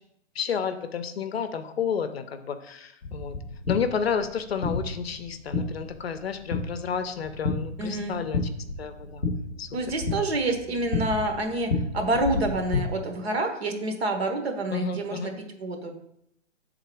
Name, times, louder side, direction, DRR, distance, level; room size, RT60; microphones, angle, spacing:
voice 1, 0.4-3.3 3.7-8.4 8.8-9.2 9.6-9.7 14.7-15.3, left 6 dB, 55° left, 9 dB, 0.6 m, -31 dB
sound 1, 3.0-12.8, left 3 dB, 5° right, 0.6 m, -32 dB
voice 2, 7.8-8.2 9.7-15.3 15.6-15.9, right 2 dB, 55° right, 4 dB, 1.2 m, -28 dB
6.7 x 3.8 x 4.6 m, 0.76 s
hypercardioid pair, 175°, 37 cm